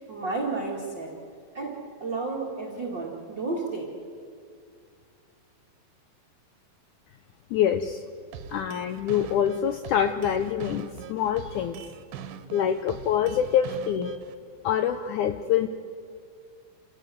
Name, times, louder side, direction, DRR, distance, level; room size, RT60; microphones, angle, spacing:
voice 1, 0.1-1.1 1.5-3.9, right 3 dB, 35° right, -4 dB, 2.5 m, -32 dB
voice 2, 7.5-8.0 8.5-11.8 12.5-14.2 14.6-15.7, left 9 dB, 75° left, 8 dB, 1.8 m, -25 dB
sound 1, 8.3-14.3, right 8 dB, 85° right, 2.8 m, -41 dB
28.5 x 17.0 x 7.8 m, 2.3 s
omnidirectional pair, 4.2 m